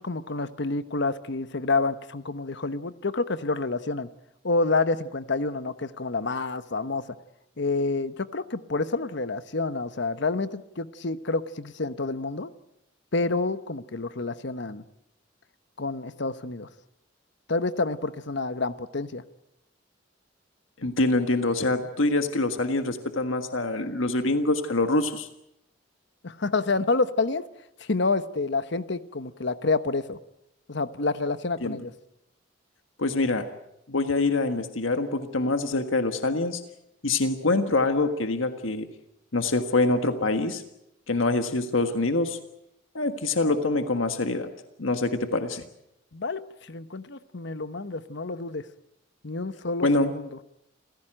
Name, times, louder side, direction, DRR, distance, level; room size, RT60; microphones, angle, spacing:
voice 1, 0.0-4.1 4.4-7.0 7.6-12.5 13.1-14.8 15.8-16.7 17.5-19.2 26.2-27.5 27.8-30.2 30.7-31.9 46.1-48.6 49.2-49.9 50.1-50.3, left 3 dB, 60° left, 13 dB, 1.1 m, -28 dB
voice 2, 20.8-25.3 31.6-31.8 33.0-33.5 33.9-36.6 37.0-38.9 39.3-40.6 41.1-42.4 42.9-44.5 44.8-45.6 49.8-50.1, left 2 dB, 90° left, 8 dB, 1.6 m, -25 dB
28.0 x 16.0 x 9.0 m, 0.82 s
head